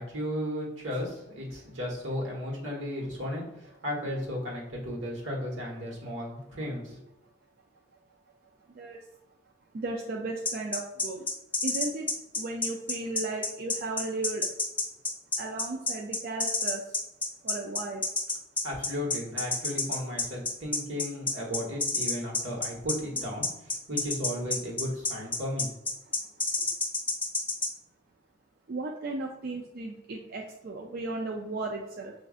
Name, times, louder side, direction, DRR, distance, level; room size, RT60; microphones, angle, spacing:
voice 1, 0.0-7.0 18.6-25.7, left 1 dB, 80° right, -2 dB, 1.2 m, -35 dB
voice 2, 8.7-9.0 9.7-11.3 11.6-14.5 15.4-17.0 17.4-18.0 26.3-26.4 28.7-32.1, right 2 dB, 50° right, 0 dB, 0.4 m, -35 dB
sound 1, 10.4-27.7, left 3 dB, 10° left, 0.8 m, -29 dB
6.0 x 2.5 x 2.4 m, 0.87 s
head